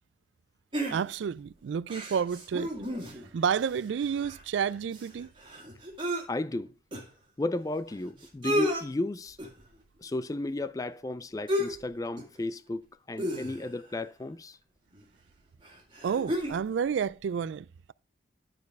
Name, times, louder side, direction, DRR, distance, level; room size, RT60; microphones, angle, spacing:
sound 1, 0.7-1.4 1.9-3.3 3.7-3.8 4.0-6.2 6.9-7.0 7.9-8.0 8.2-8.8 9.4-9.7 11.5-11.9 12.2-12.4 13.2-13.9 14.9-15.0 15.6-16.6 17.0-17.1, equal, 25° right, 1.9 m, -33 dB
voice 1, 0.9-2.7 3.3-5.3 16.0-17.9, right 7 dB, 75° right, 0.3 m, -30 dB
voice 2, 6.3-6.7 7.4-9.4 10.0-14.6, left 2 dB, 20° left, 0.3 m, -34 dB
10.5 x 4.6 x 4.6 m
head